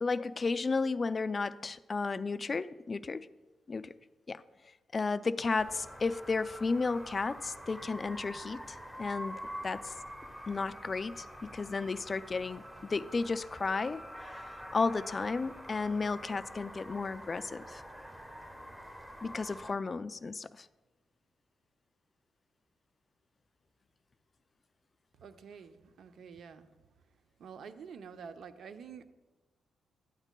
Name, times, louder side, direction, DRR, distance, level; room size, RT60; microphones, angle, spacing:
voice 1, 0.0-3.3 3.7-3.9 4.3-4.4 4.9-9.9 10.5-17.8 19.2-20.7, left 4 dB, 35° left, 15 dB, 0.3 m, -33 dB
sound 1, 5.6-19.7, equal, 5° right, 1.1 m, -46 dB
voice 2, 25.2-26.7 27.4-29.0, right 6 dB, 70° right, 9 dB, 0.6 m, -48 dB
12.5 x 8.9 x 2.2 m, 1.2 s
cardioid pair, 80°, 0 cm